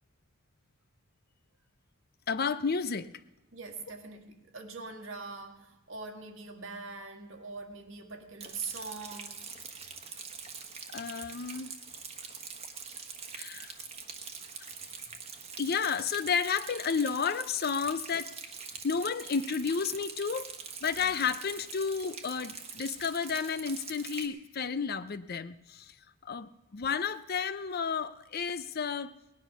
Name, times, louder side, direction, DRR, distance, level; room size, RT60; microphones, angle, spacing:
voice 1, 2.3-3.1 10.9-11.7 13.3-13.8 15.6-18.3 18.8-20.5 20.8-26.0 26.2-29.1, left 6 dB, 50° left, 0.6 m, -32 dB
voice 2, 3.5-9.4 10.1-10.3 18.7-18.8 21.0-21.2, right 4 dB, 65° right, 1.7 m, -43 dB
Rain, 8.4-24.3, right 5 dB, 30° right, 1.3 m, -44 dB
19.0 x 10.5 x 6.0 m
head